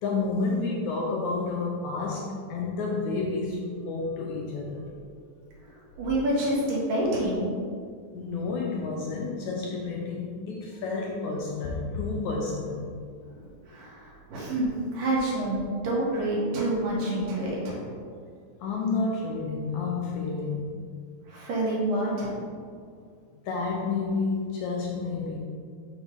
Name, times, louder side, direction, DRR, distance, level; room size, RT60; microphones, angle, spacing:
voice 1, 0.0-4.9 8.1-12.9 18.6-20.7 23.5-25.4, left 3 dB, 80° left, -2 dB, 1.8 m, -30 dB
voice 2, 6.0-7.5 13.7-17.8 21.3-22.3, right 1 dB, 80° right, -5 dB, 3.0 m, -27 dB
6.2 x 3.5 x 4.9 m, 2.1 s
omnidirectional pair, 3.8 m